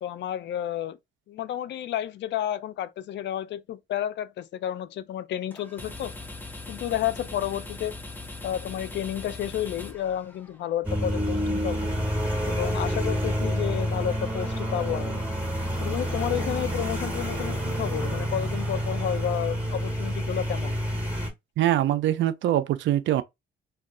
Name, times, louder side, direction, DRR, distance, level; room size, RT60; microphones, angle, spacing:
voice 1, 0.0-1.0 1.3-6.1 6.7-8.0 8.4-11.9 12.5-15.2 15.8-20.8, left 11 dB, 65° left, 0.4 m, -31 dB
sound 1, 5.5-10.7, left 2 dB, 10° left, 0.7 m, -40 dB
sound 2, 10.8-21.3, equal, 5° right, 1.6 m, -28 dB
voice 2, 21.6-23.2, right 12 dB, 70° right, 0.5 m, -23 dB
2.3 x 2.3 x 3.6 m
cardioid pair, 90°, 20 cm